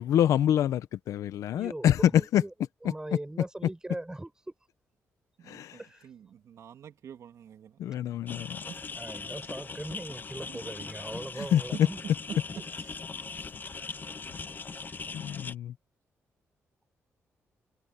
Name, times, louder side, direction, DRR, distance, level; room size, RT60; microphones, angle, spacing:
voice 1, 0.0-2.4 5.5-5.8 7.8-8.6 11.5-11.6 15.1-15.7, left 10 dB, 85° left, 1.0 m, -26 dB
voice 2, 1.5-2.5 2.8-4.5 5.8-6.0 9.0-12.0 12.3-12.4 13.7-13.9, right 1 dB, 15° right, 5.8 m, -40 dB
voice 3, 5.4-7.8 8.7-8.8 10.5-13.0 13.4-13.6, right 8 dB, 70° right, 2.7 m, -47 dB
sound 1, 8.3-15.6, left 4 dB, 35° left, 1.1 m, -40 dB
cardioid pair, 75°, 5 cm